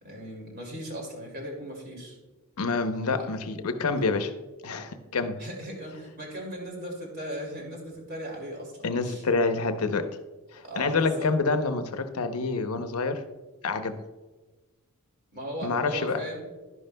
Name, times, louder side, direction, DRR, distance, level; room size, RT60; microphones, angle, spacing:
voice 1, 0.0-2.2 3.1-3.3 5.4-9.4 10.6-11.3 15.3-16.4, equal, 45° right, 0 dB, 2.5 m, -37 dB
voice 2, 2.6-4.3 4.6-5.4 8.8-10.1 10.5-13.2 13.6-13.9 15.6-16.2, left 4 dB, 80° left, 8 dB, 0.7 m, -27 dB
11.0 x 10.5 x 2.2 m, 1.2 s
head